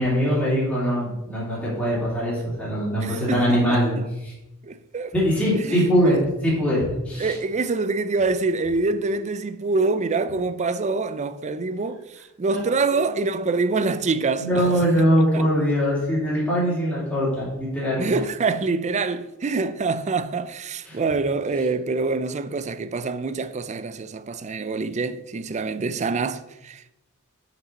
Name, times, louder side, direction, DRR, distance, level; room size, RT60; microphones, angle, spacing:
voice 1, 0.0-3.9 5.1-6.2 6.4-7.3 12.5-12.6 14.4-18.0 20.9-21.0, equal, 5° left, 2.6 m, -22 dB
voice 2, 3.0-4.1 4.6-5.1 5.5-6.2 7.1-14.7 15.3-15.4 18.0-26.9, right 3 dB, 35° right, 0.4 m, -26 dB
6.0 x 5.8 x 5.2 m
head